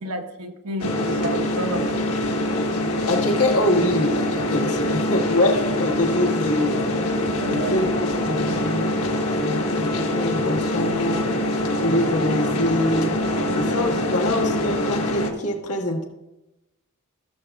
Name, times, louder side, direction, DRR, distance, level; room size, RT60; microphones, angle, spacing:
voice 1, 0.0-2.0 7.4-8.3 9.3-9.4 13.3-14.0, right 1 dB, 85° right, 3 dB, 1.2 m, -32 dB
sound 1, 0.8-15.3, left 1 dB, 70° left, 1.4 m, -24 dB
voice 2, 3.1-6.9 7.5-8.9 9.4-11.3 11.8-13.2 13.5-16.1, left 1 dB, 85° left, 0 dB, 1.6 m, -24 dB
17.0 x 7.2 x 2.3 m, 0.99 s
head